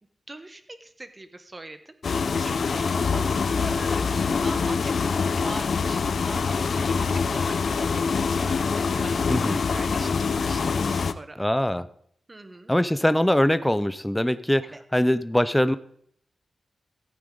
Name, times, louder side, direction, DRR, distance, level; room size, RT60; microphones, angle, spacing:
voice 1, 0.3-11.4 12.3-12.7 14.7-14.8, right 2 dB, 25° right, 9 dB, 1.1 m, -42 dB
sound 1, 2.0-11.1, left 5 dB, 60° left, 0.5 m, -25 dB
voice 2, 11.4-11.9 12.7-14.6 14.9-15.7, left 1 dB, 5° left, 13 dB, 0.5 m, -22 dB
15.0 x 8.7 x 3.8 m, 0.65 s
wide cardioid pair, 105°, 0 cm